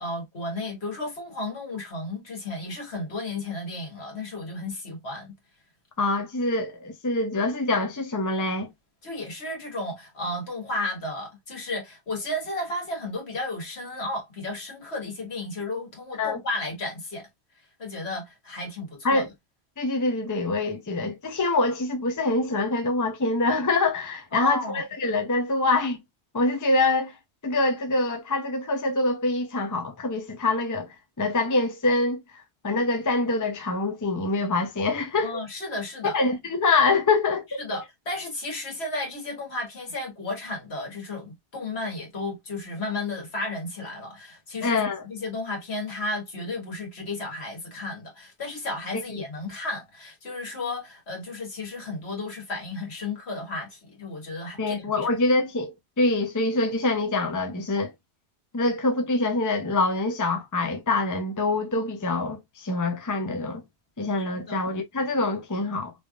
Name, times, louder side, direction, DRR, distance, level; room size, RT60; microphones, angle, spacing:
voice 1, 0.0-5.3 9.0-17.3 17.8-19.3 24.3-24.8 35.2-36.2 37.6-55.1 64.5-64.6, left 2 dB, 70° left, 2.0 m, -33 dB
voice 2, 6.0-8.7 16.2-16.4 19.0-19.3 19.8-26.0 26.3-27.2 27.4-32.2 32.6-35.4 36.1-37.6 44.6-45.0 48.9-49.2 54.6-57.9 58.5-63.6 64.0-65.9, left 2 dB, 20° left, 0.6 m, -25 dB
3.4 x 3.4 x 2.4 m
omnidirectional pair, 1.2 m